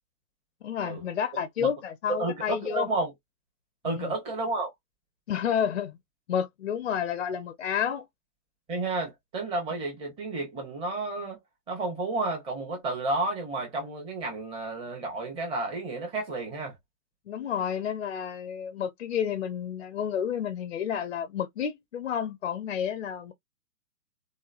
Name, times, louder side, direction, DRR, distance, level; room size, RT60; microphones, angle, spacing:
voice 1, 0.6-2.9 3.8-4.1 5.3-6.0 6.3-8.1 17.3-23.3, left 8 dB, 45° left, 0.5 m, -30 dB
voice 2, 2.1-3.1 3.8-4.7 8.7-11.4 11.7-16.8, right 2 dB, 10° right, 0.9 m, -31 dB
3.0 x 2.1 x 2.4 m
figure-of-eight pair, 120°, 49 cm